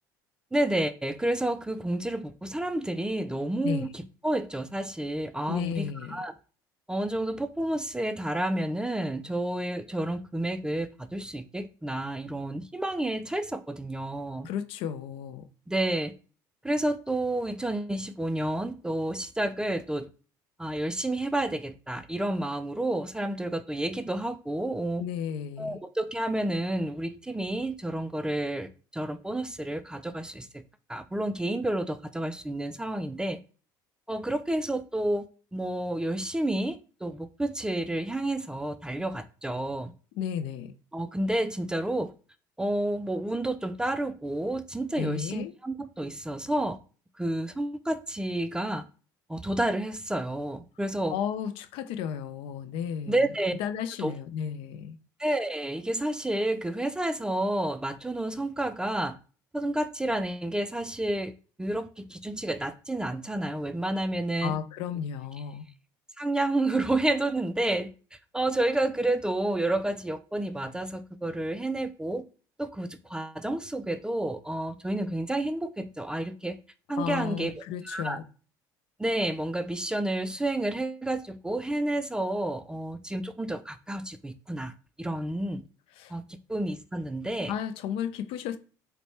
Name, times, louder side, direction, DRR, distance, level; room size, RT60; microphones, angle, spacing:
voice 1, 0.5-6.3 6.9-14.5 15.7-16.1 16.6-20.1 20.6-25.1 25.6-30.6 30.9-33.4 34.1-39.9 40.9-42.1 42.6-46.8 47.2-48.8 49.3-51.2 53.1-53.5 54.0-54.1 55.2-59.2 59.5-61.3 61.6-64.6 66.2-67.9 68.3-72.2 72.6-76.6 76.9-78.2 79.0-84.7 85.0-85.6 86.1-87.5, right 1 dB, 10° right, 0.3 m, -30 dB
voice 2, 5.5-6.2 14.4-15.5 25.0-25.8 40.2-40.7 45.0-45.5 51.1-53.2 53.6-55.0 64.4-65.6 77.0-78.2 86.0-86.2 87.5-88.6, left 8 dB, 70° left, 0.4 m, -33 dB
4.1 x 2.1 x 3.1 m
supercardioid pair, 85°, 10 cm